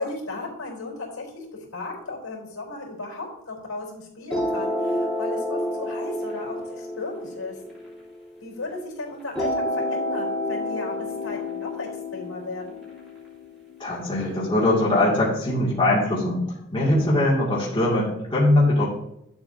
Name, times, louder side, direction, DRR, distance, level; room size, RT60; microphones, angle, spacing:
voice 1, 0.0-1.5 1.7-7.6 8.4-12.8 16.6-16.9, left 2 dB, 85° left, -2 dB, 3.7 m, -35 dB
sound 1, 4.3-8.7 9.3-14.3, left 1 dB, ahead, 3.2 m, -30 dB
voice 2, 13.8-16.5 16.7-18.8, left 1 dB, 25° left, -6 dB, 2.3 m, -21 dB
11.5 x 7.3 x 2.7 m, 0.80 s
head